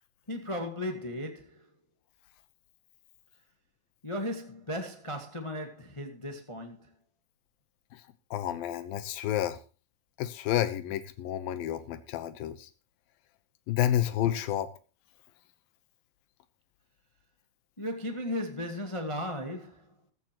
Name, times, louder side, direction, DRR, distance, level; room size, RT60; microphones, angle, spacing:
voice 1, 0.3-1.7 4.0-6.8 17.8-19.9, left 1 dB, 35° left, 0.5 m, -36 dB
voice 2, 8.3-9.6 10.2-12.7 13.7-14.7, left 12 dB, 90° left, 2.8 m, -30 dB
15.0 x 13.5 x 3.0 m
omnidirectional pair, 4.0 m